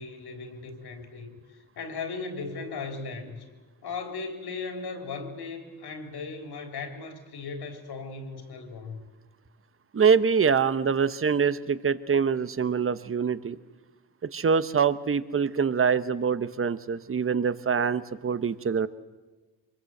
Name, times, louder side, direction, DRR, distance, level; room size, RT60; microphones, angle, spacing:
voice 1, 0.0-3.4 3.8-9.0, left 4 dB, 65° left, 5 dB, 3.9 m, -37 dB
voice 2, 9.9-13.6 14.3-18.9, right 6 dB, 30° right, 14 dB, 1.0 m, -24 dB
24.0 x 21.5 x 8.0 m, 1.3 s
cardioid pair, 80°, 42 cm